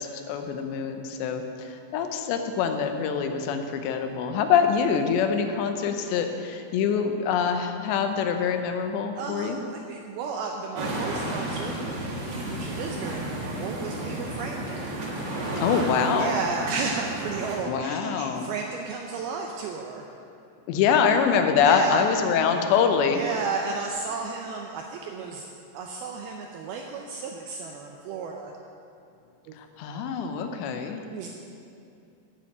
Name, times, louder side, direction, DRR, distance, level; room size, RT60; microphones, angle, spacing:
voice 1, 0.0-9.6 15.6-16.4 17.7-18.5 20.7-23.2 29.6-31.0, left 6 dB, 80° left, 6 dB, 3.0 m, -25 dB
voice 2, 9.1-11.8 12.5-14.9 15.7-20.1 21.6-22.2 23.1-25.5 25.7-28.5 29.5-29.6 31.1-31.3, right 4 dB, 80° right, 1 dB, 2.3 m, -33 dB
sound 1, 10.8-17.6, right 1 dB, 65° right, 1.1 m, -32 dB
10.5 x 7.3 x 8.7 m, 2.5 s
omnidirectional pair, 5.1 m